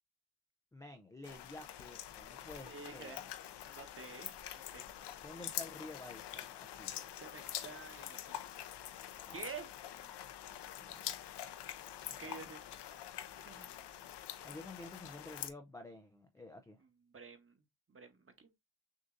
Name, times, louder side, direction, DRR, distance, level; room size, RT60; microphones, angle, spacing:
voice 1, 0.7-3.3 5.2-7.0 9.3-9.4 10.8-11.1 12.1-12.4 14.4-16.8, left 2 dB, 5° left, 0.4 m, -51 dB
sound 1, 1.2-15.5, left 11 dB, 55° left, 0.7 m, -46 dB
voice 2, 2.6-3.3 3.6-4.9 7.2-8.3 9.3-9.7 12.0-12.6 13.5-13.7 17.1-17.5 17.9-18.5, right 5 dB, 25° right, 1.1 m, -49 dB
6.4 x 2.6 x 2.5 m
cardioid pair, 95°, 49 cm